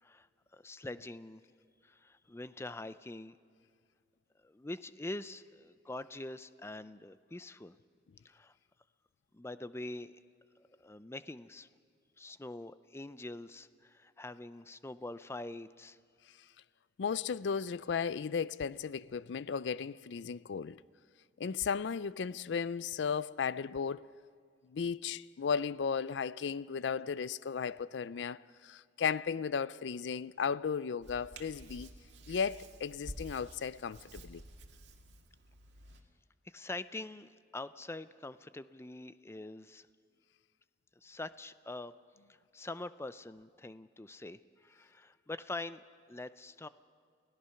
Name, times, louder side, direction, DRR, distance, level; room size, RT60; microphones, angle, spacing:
voice 1, 0.5-1.4 1.8-3.4 4.4-7.8 8.2-8.5 9.3-10.1 10.8-11.7 12.2-16.0 36.4-39.9 41.0-41.9 42.5-45.8 46.1-46.7, left 2 dB, 15° left, 0.5 m, -44 dB
voice 2, 17.0-20.8 21.4-24.1 24.6-31.9 32.3-34.4, left 6 dB, 80° left, 0.4 m, -35 dB
Hands, 31.0-36.0, right 1 dB, 85° right, 2.0 m, -51 dB
29.5 x 17.0 x 5.8 m
head